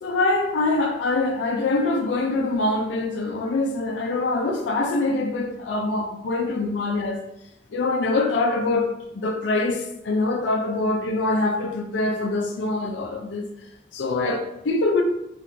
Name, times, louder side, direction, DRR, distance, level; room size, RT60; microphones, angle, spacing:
voice 1, 0.0-7.2 7.7-13.5 13.9-15.0, left 2 dB, 70° left, 0.4 m, -24 dB
4.4 x 2.5 x 2.5 m
head